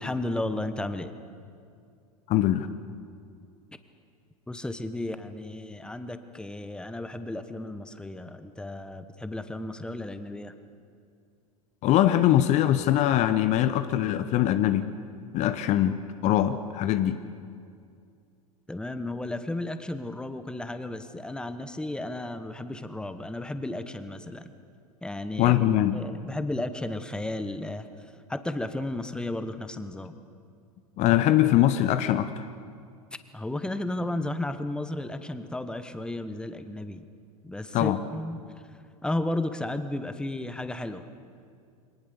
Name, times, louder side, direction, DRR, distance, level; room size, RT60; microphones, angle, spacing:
voice 1, 0.0-1.1 4.5-10.5 18.7-24.5 25.0-25.5 25.9-27.9 28.3-30.1 33.3-37.0 37.4-38.4 39.0-41.1, left 1 dB, 5° left, 10 dB, 1.2 m, -33 dB
voice 2, 2.3-2.7 11.8-14.9 15.3-17.2 25.4-26.0 31.0-32.5 37.7-38.0, left 12 dB, 40° left, 11 dB, 0.9 m, -22 dB
24.5 x 19.0 x 6.9 m, 2.3 s
figure-of-eight pair, 85°, 19 cm